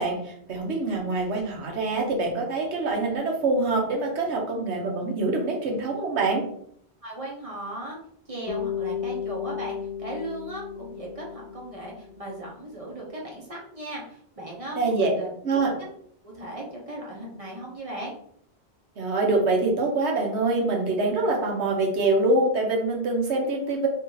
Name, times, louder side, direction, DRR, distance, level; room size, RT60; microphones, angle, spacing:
voice 1, 0.0-6.4 14.8-15.1 15.4-15.7 19.0-23.9, right 2 dB, 85° right, 1 dB, 1.2 m, -25 dB
voice 2, 7.0-8.0 8.3-15.3 16.2-18.1, right 1 dB, 35° right, -3 dB, 1.0 m, -37 dB
Bass guitar, 8.5-12.7, left 8 dB, 80° left, 0.9 m, -34 dB
2.9 x 2.8 x 3.8 m, 0.67 s
omnidirectional pair, 1.1 m